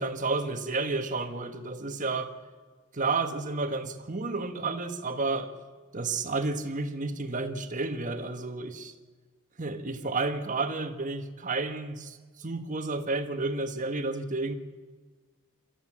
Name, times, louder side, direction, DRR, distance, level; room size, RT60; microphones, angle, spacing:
voice 1, 0.0-2.3 2.9-5.5 5.9-8.9 9.6-14.5, right 3 dB, 40° right, 7 dB, 1.6 m, -31 dB
27.5 x 13.5 x 7.5 m, 1.4 s
head